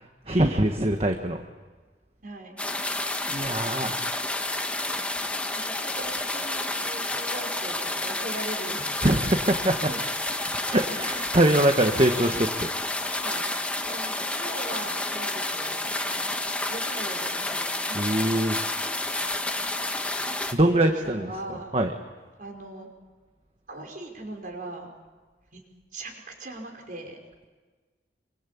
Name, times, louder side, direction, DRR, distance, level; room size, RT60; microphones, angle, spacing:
voice 1, 0.3-1.4 3.3-4.0 5.2-5.3 9.0-9.9 10.7-12.7 17.9-18.6 20.5-21.3 21.7-21.9, right 1 dB, 35° right, 4 dB, 1.4 m, -23 dB
voice 2, 2.2-2.6 5.5-9.2 9.9-10.0 12.6-12.8 13.2-16.3 16.7-18.0 20.5-21.7 22.4-22.9 23.7-24.9 25.5-25.6 25.9-27.2, right 2 dB, 50° right, 2 dB, 5.4 m, -40 dB
sound 1, 2.6-20.5, left 2 dB, 5° left, 1.5 m, -30 dB
27.0 x 25.0 x 8.6 m, 1.4 s
head